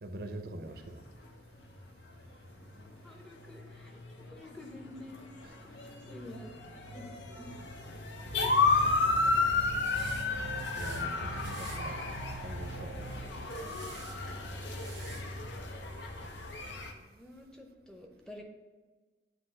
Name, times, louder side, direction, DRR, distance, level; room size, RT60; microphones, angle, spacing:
voice 1, 0.0-1.0 5.4-5.5 10.7-12.2 12.4-13.0, right 1 dB, 55° right, 6 dB, 0.6 m, -42 dB
sound 1, 1.6-16.9, left 3 dB, 80° left, 0.8 m, -33 dB
voice 2, 3.0-5.3 5.6-6.5 6.9-7.1 7.4-7.6 14.0-14.8 17.0-18.4, left 1 dB, 5° left, 2 dB, 0.7 m, -50 dB
sound 2, 8.3-13.4, right 3 dB, 35° left, 1.2 m, -44 dB
sound 3, 9.8-10.3 10.6-11.1 11.4-11.8 12.4-12.7 13.5-14.2 14.6-15.2, right 7 dB, 90° right, 0.9 m, -50 dB
7.8 x 2.8 x 5.6 m, 1.3 s
head